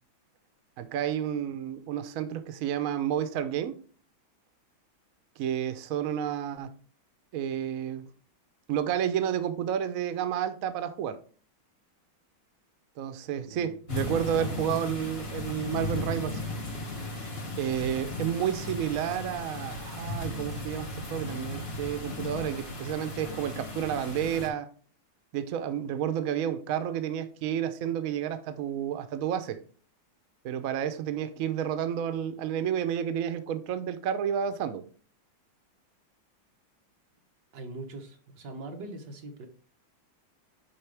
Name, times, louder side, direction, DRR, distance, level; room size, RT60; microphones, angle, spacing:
voice 1, 0.8-3.8 5.4-6.8 7.3-8.0 8.7-11.2 13.0-16.4 17.6-24.7 25.3-29.6 30.4-34.8, right 9 dB, 90° right, 0.7 m, -31 dB
voice 2, 13.5-13.8 37.5-39.5, right 2 dB, 60° right, 1.6 m, -42 dB
sound 1, 13.9-24.5, left 2 dB, 35° left, 1.4 m, -36 dB
10.5 x 3.5 x 3.3 m
omnidirectional pair, 2.3 m